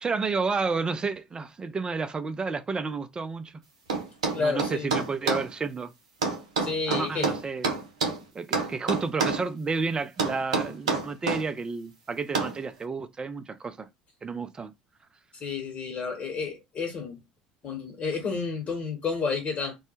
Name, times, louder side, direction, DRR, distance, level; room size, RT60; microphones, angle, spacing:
voice 1, 0.0-3.5 4.3-5.9 6.9-7.7 8.3-13.9 14.2-14.7, right 4 dB, 25° right, 0.4 m, -31 dB
sound 1, 3.9-5.5 6.2-8.2 8.5-9.5 10.2-11.4 12.3-12.6, right 4 dB, 85° right, 0.6 m, -27 dB
voice 2, 4.3-4.9 6.6-7.3 15.4-17.2 17.6-19.8, left 4 dB, 40° left, 1.1 m, -30 dB
2.2 x 2.0 x 3.0 m
hypercardioid pair, 65°, 4 cm